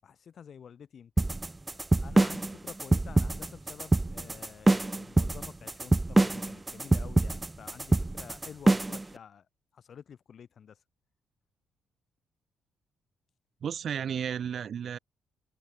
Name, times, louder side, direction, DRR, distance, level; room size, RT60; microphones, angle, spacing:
voice 1, 0.0-1.3 2.0-9.5 9.7-10.8, left 7 dB, 55° left, 5.7 m, -49 dB
sound 1, 1.2-9.0, right 2 dB, 15° right, 0.7 m, -25 dB
voice 2, 13.6-15.0, right 8 dB, 55° right, 0.8 m, -33 dB
open air
cardioid pair, 90°, 0 cm